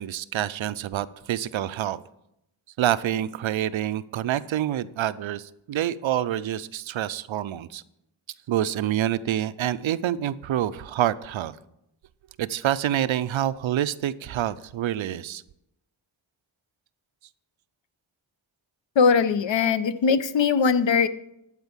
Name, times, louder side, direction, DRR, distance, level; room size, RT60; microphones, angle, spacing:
voice 1, 0.0-2.0 2.8-7.8 8.5-11.5 12.4-15.4, right 11 dB, 75° right, 15 dB, 0.6 m, -27 dB
voice 2, 19.0-21.1, left 6 dB, 65° left, 13 dB, 0.7 m, -20 dB
12.0 x 4.5 x 7.2 m, 0.82 s
cardioid pair, 75°, 48 cm